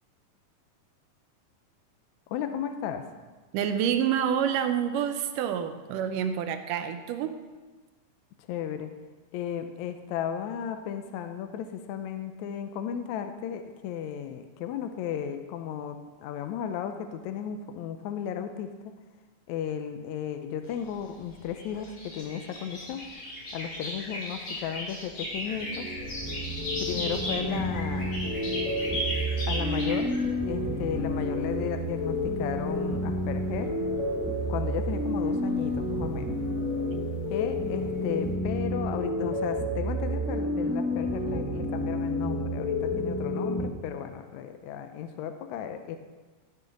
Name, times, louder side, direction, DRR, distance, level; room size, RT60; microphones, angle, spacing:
voice 1, 2.3-3.0 8.5-8.9 9.3-18.9 19.5-23.0 23.5-25.9 26.8-28.2 29.5-30.1 30.5-33.7 34.5-36.4 37.3-46.0, left 9 dB, 80° left, 7 dB, 1.8 m, -34 dB
voice 2, 3.5-7.4 36.9-37.0, right 8 dB, 80° right, 8 dB, 2.3 m, -28 dB
sound 1, 20.6-30.2, left 1 dB, 50° left, 4.5 m, -36 dB
sound 2, 25.3-43.7, left 1 dB, 10° right, 2.4 m, -30 dB
sound 3, 26.0-38.4, right 3 dB, 60° right, 3.0 m, -45 dB
14.5 x 6.1 x 5.3 m, 1.3 s
omnidirectional pair, 3.8 m